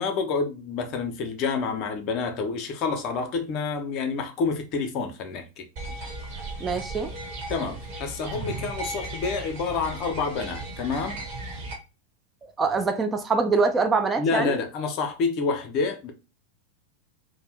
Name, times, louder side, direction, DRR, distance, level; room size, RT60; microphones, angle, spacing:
voice 1, 0.0-5.7 7.5-11.2 14.2-16.1, left 4 dB, 40° left, 0.5 m, -28 dB
sound 1, 5.8-11.7, right 2 dB, 45° right, 1.2 m, -36 dB
voice 2, 6.6-7.1 12.6-14.6, right 4 dB, 15° right, 0.4 m, -24 dB
2.5 x 2.0 x 3.3 m
figure-of-eight pair, 90°, 0 cm